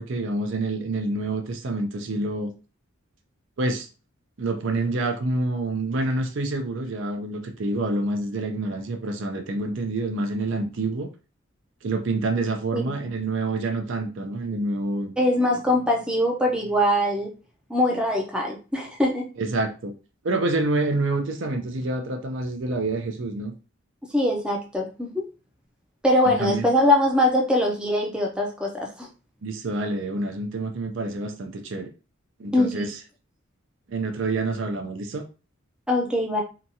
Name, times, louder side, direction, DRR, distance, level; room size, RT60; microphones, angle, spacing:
voice 1, 0.0-2.5 3.6-3.9 4.4-11.1 11.8-15.1 19.4-19.9 20.2-23.5 26.3-26.7 29.4-31.9 32.4-33.0 33.9-35.3, right 2 dB, 60° right, 0.5 m, -27 dB
voice 2, 12.7-13.1 15.2-17.3 17.7-19.3 24.1-25.3 26.0-29.1 32.5-32.9 35.9-36.4, left 1 dB, 5° right, 0.4 m, -22 dB
2.8 x 2.3 x 2.6 m
head